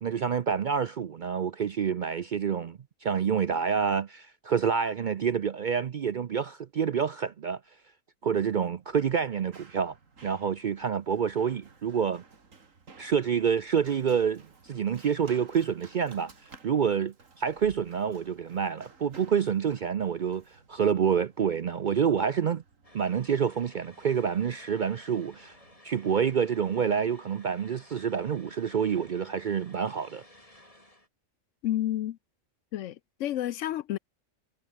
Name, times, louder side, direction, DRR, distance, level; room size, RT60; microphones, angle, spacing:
voice 1, 0.0-7.6 8.2-9.9 10.2-12.2 13.0-22.6 22.9-25.6 25.8-30.2, right 7 dB, 55° right, 0.5 m, -28 dB
Run, 8.5-25.8, right 4 dB, 80° right, 2.7 m, -56 dB
sound 1, 22.8-31.1, left 1 dB, 25° left, 5.7 m, -56 dB
voice 2, 31.6-32.2 32.7-34.0, left 13 dB, 70° left, 0.9 m, -30 dB
omnidirectional pair, 1.4 m